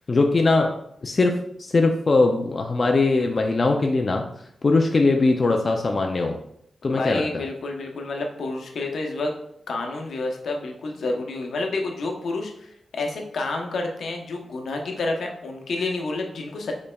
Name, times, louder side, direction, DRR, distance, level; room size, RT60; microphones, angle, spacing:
voice 1, 0.1-0.7 1.0-4.2 4.6-6.4 6.8-7.4, left 3 dB, 35° left, 2 dB, 0.4 m, -21 dB
voice 2, 6.9-9.3 9.7-16.7, left 2 dB, 75° left, 2 dB, 0.7 m, -29 dB
5.3 x 4.0 x 2.3 m, 0.72 s
wide cardioid pair, 135°, 0 cm